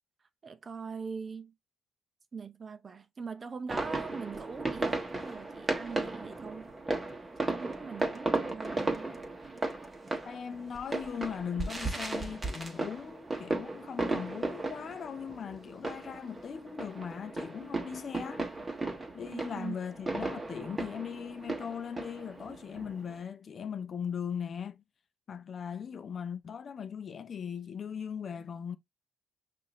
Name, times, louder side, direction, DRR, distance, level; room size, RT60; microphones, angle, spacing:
voice 1, 0.4-1.5 2.3-6.7 7.4-9.1 9.5-9.6 19.3-19.8, right 5 dB, 35° right, 0.6 m, -42 dB
sound 1, 3.7-23.2, right 2 dB, 20° right, 1.2 m, -36 dB
voice 2, 10.3-18.5 19.1-24.8 25.3-28.8, left 7 dB, 50° left, 0.5 m, -39 dB
5.5 x 2.6 x 3.0 m
cardioid pair, 90°, 0 cm